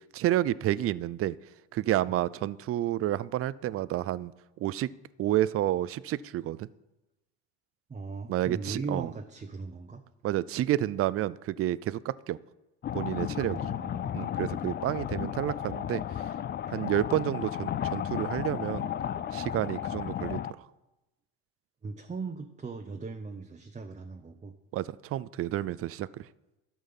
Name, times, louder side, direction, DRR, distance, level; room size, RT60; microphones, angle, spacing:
voice 1, 0.0-1.4 1.7-4.9 5.2-6.7 8.3-9.1 10.2-12.4 12.9-13.7 14.1-16.0 16.7-18.9 19.3-20.4 24.7-26.3, right 13 dB, 40° right, 20 dB, 0.5 m, -30 dB
voice 2, 7.9-10.0 13.4-14.1 21.8-24.5, right 4 dB, 20° right, 5 dB, 0.9 m, -39 dB
sound 1, 12.8-20.5, left 10 dB, 30° left, 0.4 m, -34 dB
13.0 x 6.3 x 5.4 m, 0.99 s
hypercardioid pair, 80°, 37 cm